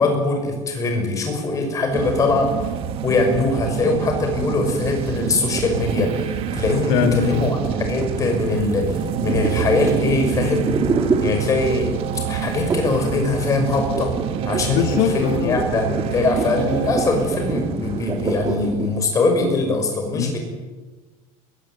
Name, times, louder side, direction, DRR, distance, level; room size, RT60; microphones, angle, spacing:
voice 1, 0.0-2.5 3.0-8.9 9.2-10.7 11.2-14.1 14.4-20.4, left 3 dB, 20° left, 3 dB, 6.0 m, -22 dB
sound 1, 1.9-19.1, right 8 dB, 35° right, 1.5 m, -28 dB
sound 2, 5.6-11.9 12.7-13.1 13.3-19.0, right 4 dB, 20° right, 2.7 m, -28 dB
voice 2, 6.9-7.5 14.7-15.6 20.1-20.4, left 9 dB, 55° left, 6 dB, 1.8 m, -22 dB
22.5 x 22.0 x 9.6 m, 1.3 s
cardioid pair, 180°, 16 cm